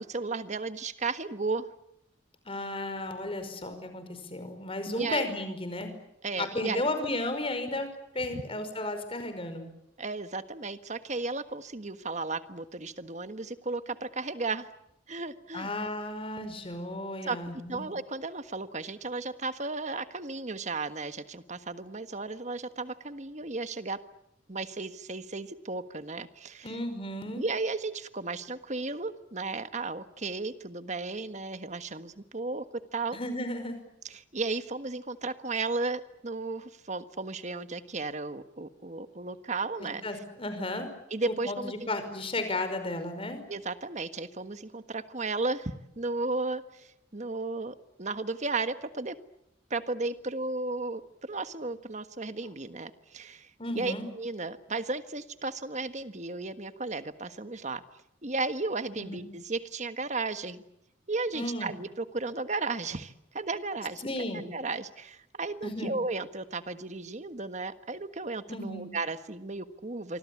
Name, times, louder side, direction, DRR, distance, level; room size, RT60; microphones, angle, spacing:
voice 1, 0.0-1.7 4.9-5.3 6.2-6.8 10.0-14.7 15.1-15.7 17.2-24.0 24.5-26.8 27.4-33.2 34.0-40.0 41.1-41.7 43.5-49.1 49.7-53.5 53.7-57.8 58.2-60.6 61.1-64.0 64.3-70.2, right 3 dB, 40° right, 11 dB, 1.5 m, -34 dB
voice 2, 2.5-5.9 6.4-9.7 15.5-17.8 26.6-27.4 33.1-33.8 39.8-40.9 41.3-43.4 53.6-54.1 59.0-59.2 61.3-61.7 64.0-64.4 65.6-65.9 68.5-68.8, left 1 dB, 30° left, 9 dB, 5.2 m, -34 dB
27.5 x 24.5 x 8.6 m, 0.81 s
head